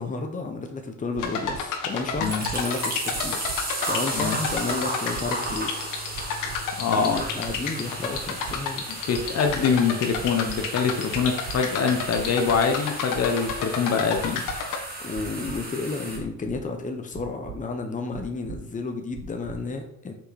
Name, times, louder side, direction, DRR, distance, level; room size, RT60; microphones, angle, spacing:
voice 1, 0.0-5.7 6.6-8.8 9.3-9.8 15.0-20.1, left 3 dB, 25° left, 4 dB, 1.0 m, -32 dB
sound 1, 1.2-14.8, left 6 dB, 70° left, 1.4 m, -32 dB
sound 2, 1.2-1.6 2.1-2.6 3.1-3.6 4.1-4.6 5.1-5.6 6.1-6.6 7.1-7.6 8.1-8.6 9.1-9.6 10.1-10.6 11.1-11.6 12.1-12.6 13.1-13.6 14.1-14.6 15.1-15.6 16.1-16.6 17.1-17.6 18.1-18.6 19.1-19.6, right 10 dB, 65° right, 0.9 m, -39 dB
sound 3, 1.9-16.2, right 1 dB, 30° right, 2.2 m, -34 dB
voice 2, 6.8-7.2 9.1-14.4, left 6 dB, 50° left, 5 dB, 1.0 m, -24 dB
5.9 x 5.2 x 4.3 m, 0.74 s
cardioid pair, 100°, 33 cm